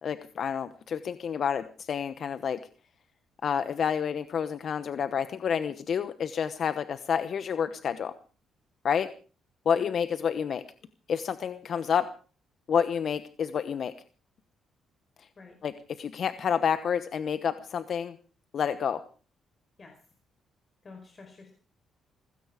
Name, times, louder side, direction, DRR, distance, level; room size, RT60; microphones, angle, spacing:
voice 1, 0.0-2.6 3.4-8.1 8.8-9.1 9.6-10.6 11.1-12.1 12.7-13.9 15.2-15.3 15.6-15.7 16.0-18.2 18.5-19.0, left 7 dB, 55° left, 12 dB, 1.0 m, -29 dB
voice 2, 20.8-21.5, left 4 dB, 35° left, 4 dB, 4.7 m, -49 dB
18.0 x 16.0 x 5.0 m, 0.40 s
cardioid pair, 90°, 0 cm